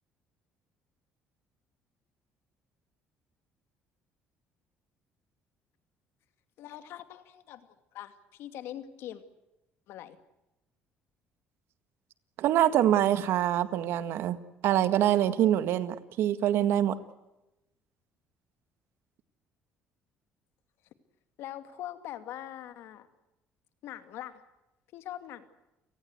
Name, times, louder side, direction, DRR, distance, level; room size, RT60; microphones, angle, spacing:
voice 1, 6.6-9.2 9.9-10.2 21.4-23.1 23.8-24.4 24.9-25.5, left 12 dB, 75° left, 10 dB, 2.4 m, -42 dB
voice 2, 12.4-14.4 14.6-17.0, right 11 dB, 70° right, 12 dB, 1.9 m, -25 dB
30.0 x 19.0 x 8.0 m, 0.96 s
cardioid pair, 115°, 4 cm